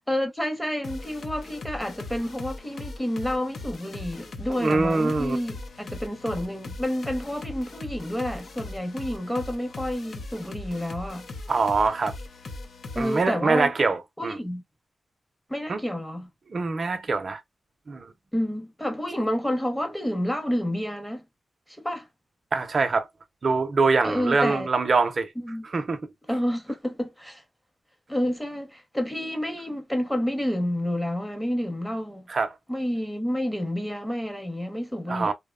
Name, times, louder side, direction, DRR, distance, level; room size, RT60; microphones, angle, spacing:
voice 1, 0.1-11.3 12.9-13.7 14.2-14.6 15.5-16.3 18.3-21.2 21.7-22.1 24.0-24.7 25.4-25.7 26.3-27.4 28.1-32.3 32.7-35.3, equal, 5° left, 0.8 m, -29 dB
sound 1, 0.8-13.2, left 2 dB, 70° left, 0.6 m, -39 dB
voice 2, 4.6-5.4 11.5-12.1 13.0-14.4 15.7-15.8 16.5-17.4 17.9-18.1 22.5-23.1 23.4-25.3 25.7-26.0 32.3-32.5 35.1-35.3, right 4 dB, 50° right, 0.5 m, -24 dB
2.8 x 2.1 x 2.3 m
wide cardioid pair, 90°, 0 cm